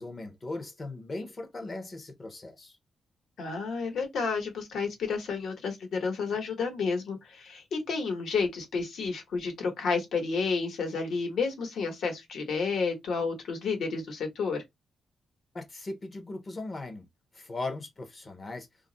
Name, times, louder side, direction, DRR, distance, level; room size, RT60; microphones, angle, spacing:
voice 1, 0.0-2.8 15.5-17.1 17.3-18.7, left 2 dB, 30° left, 0.6 m, -38 dB
voice 2, 3.4-14.6, left 4 dB, 70° left, 1.0 m, -31 dB
2.3 x 2.0 x 3.7 m
wide cardioid pair, 160°, 0 cm